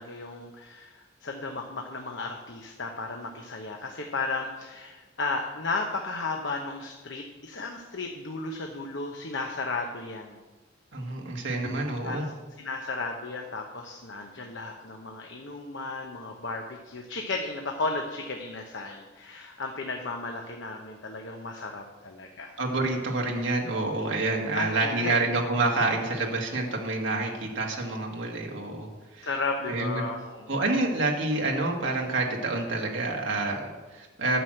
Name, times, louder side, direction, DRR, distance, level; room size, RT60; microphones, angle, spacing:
voice 1, 0.0-10.4 12.0-12.2 12.6-22.5 24.5-25.2 29.2-30.5, left 3 dB, 65° left, 2 dB, 0.9 m, -34 dB
voice 2, 10.9-12.3 22.6-29.3 29.7-30.1 30.5-34.4, right 2 dB, 65° right, 0 dB, 1.9 m, -28 dB
11.0 x 6.3 x 7.6 m, 1.2 s
head